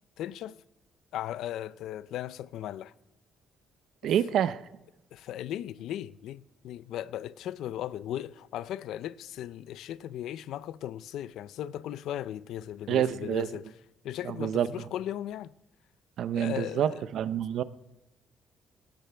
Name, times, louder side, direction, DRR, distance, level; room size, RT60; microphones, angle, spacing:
voice 1, 0.2-0.6 1.1-2.9 4.0-4.1 5.1-13.6 14.0-15.5 16.3-17.0, left 12 dB, 80° left, 0.5 m, -37 dB
voice 2, 4.0-4.6 12.9-13.5 14.2-14.7 16.2-17.6, right 9 dB, 65° right, 0.7 m, -27 dB
20.0 x 18.0 x 3.4 m
cardioid pair, 135°, 0 cm